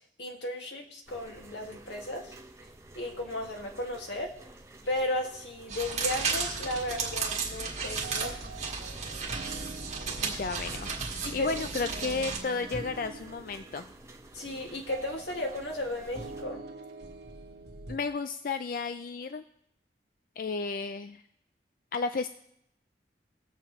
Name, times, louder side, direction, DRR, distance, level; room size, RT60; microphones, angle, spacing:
voice 1, 0.2-2.3 3.0-4.3 4.9-8.5 11.2-11.5 14.3-16.6, left 1 dB, 85° left, 1 dB, 2.0 m, -35 dB
sound 1, 1.1-16.4, right 1 dB, 15° right, 0.7 m, -51 dB
sound 2, 5.7-12.4, right 5 dB, 40° right, 1.7 m, -34 dB
sound 3, 6.6-18.0, right 3 dB, 70° right, 1.3 m, -45 dB
voice 2, 10.2-13.9 17.9-19.4 20.4-21.2 21.9-22.3, left 4 dB, 50° left, 9 dB, 0.4 m, -33 dB
20.5 x 7.3 x 3.0 m, 0.76 s
head